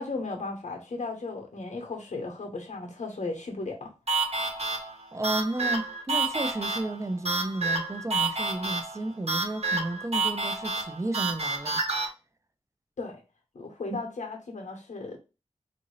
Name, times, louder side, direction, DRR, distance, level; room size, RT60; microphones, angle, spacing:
voice 1, 0.0-3.9 13.0-13.2 13.5-15.2, left 3 dB, 90° left, 0.9 m, -35 dB
sound 1, 4.1-12.1, right 3 dB, 60° right, 1.1 m, -29 dB
voice 2, 5.1-11.8 13.9-14.0, right 2 dB, 25° right, 0.5 m, -33 dB
3.7 x 2.6 x 3.0 m
wide cardioid pair, 60°, 12 cm